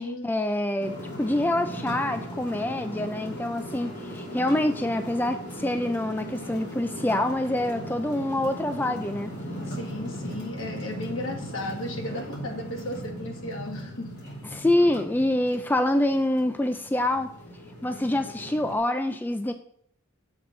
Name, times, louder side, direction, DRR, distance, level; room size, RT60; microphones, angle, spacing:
voice 1, 0.2-9.3 14.5-17.3 17.8-19.5, left 1 dB, 10° left, 0.3 m, -26 dB
sound 1, 0.8-18.8, equal, 55° left, 2.9 m, -38 dB
voice 2, 9.7-14.1, left 1 dB, 75° left, 1.7 m, -35 dB
7.1 x 3.9 x 6.5 m
head